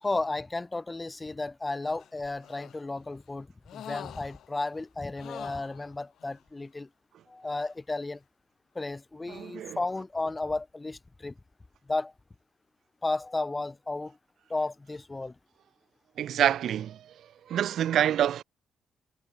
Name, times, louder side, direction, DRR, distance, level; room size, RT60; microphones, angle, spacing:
voice 1, 0.0-3.5 3.7-6.9 7.3-8.2 8.7-11.3 11.9-12.1 13.0-14.2 14.5-15.3, left 2 dB, 20° left, 1.3 m, -33 dB
sound 1, 2.0-3.0 3.7-4.7 5.2-6.4 7.5-7.7, left 11 dB, 70° left, 0.8 m, -46 dB
voice 2, 9.3-9.8 16.2-17.0 17.5-18.4, right 10 dB, 70° right, 0.3 m, -26 dB
cardioid pair, 90°, 0 cm